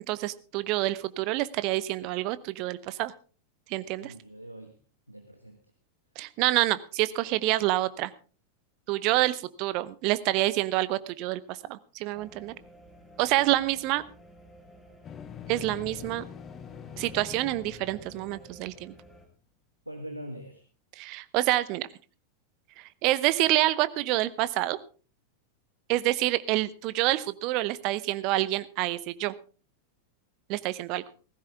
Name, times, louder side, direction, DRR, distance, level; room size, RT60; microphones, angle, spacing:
voice 1, 0.1-3.1 3.7-4.1 6.2-8.1 8.9-12.5 13.2-14.0 15.5-16.3 17.0-18.9 21.0-21.9 22.8-24.8 25.9-29.3 30.5-31.0, right 16 dB, 40° right, 16 dB, 0.8 m, -27 dB
voice 2, 4.0-4.8 5.1-5.6 19.8-20.6, equal, 90° right, 5 dB, 1.5 m, -42 dB
sound 1, 12.1-19.3, equal, ahead, 4.6 m, -53 dB
sound 2, 15.0-19.0, left 8 dB, 25° left, 0.8 m, -44 dB
17.0 x 15.0 x 3.5 m, 0.37 s
figure-of-eight pair, 90°, 0 cm